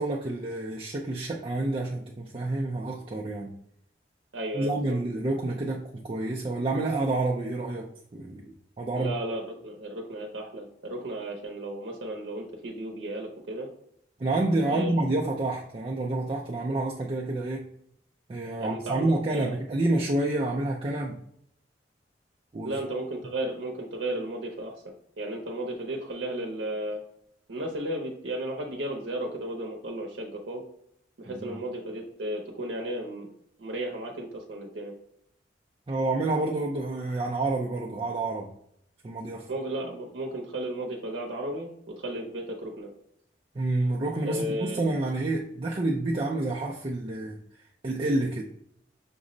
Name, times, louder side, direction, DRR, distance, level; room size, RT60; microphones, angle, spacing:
voice 1, 0.0-3.5 4.5-9.1 14.2-17.7 18.3-21.2 22.5-22.7 31.3-31.6 35.9-38.5 39.0-39.5 43.5-47.4 47.8-48.4, right 2 dB, 30° right, -2 dB, 0.4 m, -28 dB
voice 2, 4.3-5.0 9.0-13.7 14.7-15.0 18.6-19.5 22.6-27.0 27.5-30.6 31.2-33.3 33.6-35.0 39.5-42.9 44.2-44.8, right 1 dB, 80° right, 0 dB, 0.7 m, -34 dB
6.0 x 2.1 x 3.8 m, 0.71 s
head